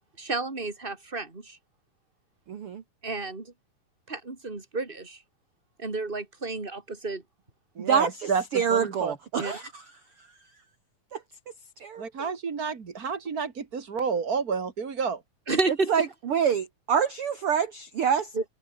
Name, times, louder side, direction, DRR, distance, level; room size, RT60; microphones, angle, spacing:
voice 1, 0.2-1.6 3.0-3.5 4.1-5.2 5.8-7.2 9.4-9.6 15.5-15.9 18.3-18.4, right 3 dB, 15° right, 3.4 m, -31 dB
voice 2, 2.5-2.8 7.8-9.7 11.1-11.2 11.8-12.3 15.9-18.3, right 7 dB, 50° right, 2.1 m, -26 dB
voice 3, 7.8-8.4 8.7-9.1 12.0-15.2, right 5 dB, 35° right, 1.8 m, -30 dB
omnidirectional pair, 4.0 m